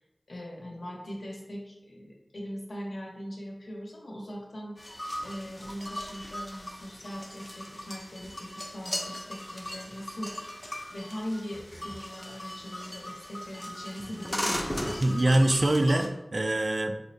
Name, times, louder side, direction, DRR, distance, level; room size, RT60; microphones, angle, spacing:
voice 1, 0.3-4.8 5.2-10.3 10.9-15.1, equal, 75° left, -2 dB, 0.8 m, -40 dB
sound 1, 4.8-16.1, equal, 20° left, 0.5 m, -38 dB
voice 2, 15.0-17.0, right 1 dB, 50° right, 6 dB, 0.3 m, -24 dB
4.7 x 2.1 x 2.6 m, 0.93 s
wide cardioid pair, 65°, 0 cm